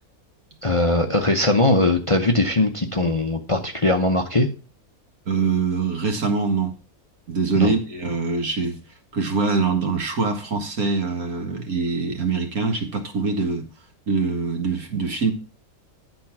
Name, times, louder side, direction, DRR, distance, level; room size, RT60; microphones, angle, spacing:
voice 1, 0.6-4.5 7.6-7.7, left 2 dB, 30° left, 0.7 m, -20 dB
voice 2, 5.3-6.8 7.3-8.8 9.1-13.7 14.1-15.3, right 4 dB, 75° right, 2.1 m, -24 dB
10.5 x 4.5 x 5.9 m
omnidirectional pair, 1.6 m